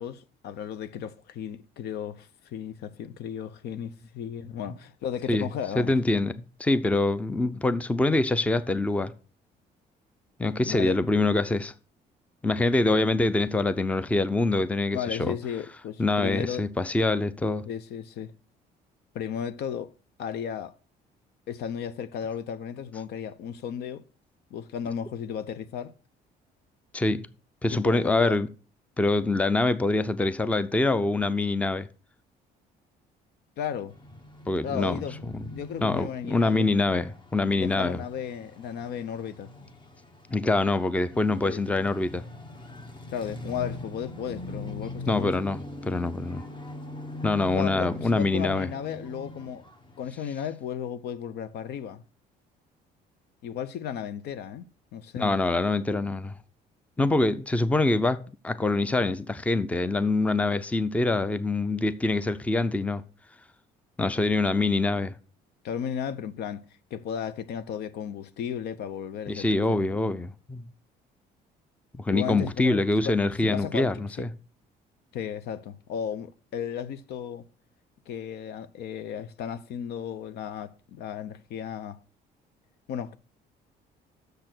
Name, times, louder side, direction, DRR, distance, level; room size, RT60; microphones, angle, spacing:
voice 1, 0.0-5.9 10.7-11.2 12.9-13.0 14.9-16.7 17.7-18.3 19.1-19.9 20.2-20.8 21.5-24.0 24.5-25.9 27.7-28.4 33.6-33.9 34.6-36.7 37.5-39.5 41.1-41.6 43.1-45.3 47.5-49.6 50.0-52.0 53.4-55.3 65.6-66.6 66.9-69.9 72.1-73.9 74.2-74.3 75.1-77.4 78.1-82.0 82.9-83.2, left 8 dB, 75° left, 0.7 m, -35 dB
voice 2, 5.8-9.1 10.4-11.7 12.4-15.3 16.0-17.6 26.9-27.3 27.6-28.5 29.0-31.9 34.5-35.0 35.3-35.4 35.8-38.0 40.3-42.2 45.1-45.6 45.9-46.5 47.2-48.7 55.2-56.3 57.0-58.2 58.4-63.0 64.0-65.1 69.3-70.6 72.0-74.3, left 2 dB, 10° left, 0.5 m, -25 dB
sound 1, 33.9-50.0, left 2 dB, 30° left, 1.3 m, -42 dB
6.7 x 6.6 x 6.0 m
cardioid pair, 110°, 17 cm